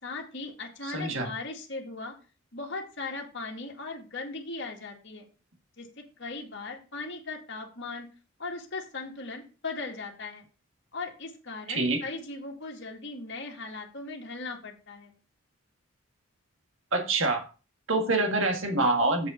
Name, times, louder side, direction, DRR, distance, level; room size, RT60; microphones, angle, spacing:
voice 1, 0.0-2.1 2.5-5.3 5.8-8.1 8.4-10.5 10.9-15.1, left 3 dB, 55° left, 1 dB, 2.0 m, -38 dB
voice 2, 0.9-1.3 11.7-12.0 16.9-17.4 17.9-19.3, right 2 dB, 60° right, 4 dB, 1.8 m, -25 dB
7.8 x 5.2 x 6.3 m, 0.34 s
head